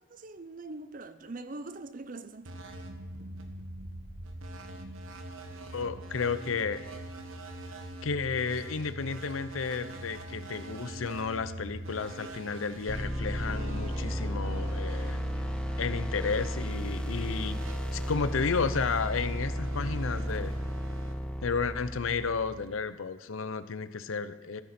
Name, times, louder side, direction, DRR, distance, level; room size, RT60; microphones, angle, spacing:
voice 1, 0.0-2.6, right 2 dB, 40° right, 0.6 m, -42 dB
sound 1, 2.4-22.0, right 1 dB, 90° right, 1.3 m, -44 dB
voice 2, 5.7-6.8 8.0-15.2 15.8-17.6 17.9-20.5 21.4-24.6, left 5 dB, 85° left, 0.6 m, -32 dB
sound 2, 12.9-22.7, equal, 5° left, 0.4 m, -34 dB
15.0 x 9.4 x 4.3 m
head